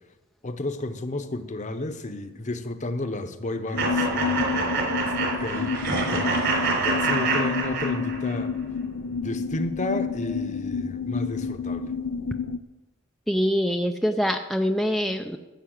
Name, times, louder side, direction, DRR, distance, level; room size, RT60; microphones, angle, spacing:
voice 1, 0.4-6.4 6.8-8.5 9.1-11.9, left 2 dB, 35° left, 0.9 m, -32 dB
sound 1, 3.7-12.6, left 5 dB, 80° left, 0.5 m, -29 dB
sound 2, 3.8-8.4, right 4 dB, 60° right, 3.5 m, -26 dB
voice 2, 13.3-15.4, equal, ahead, 0.4 m, -24 dB
15.0 x 6.8 x 8.0 m
head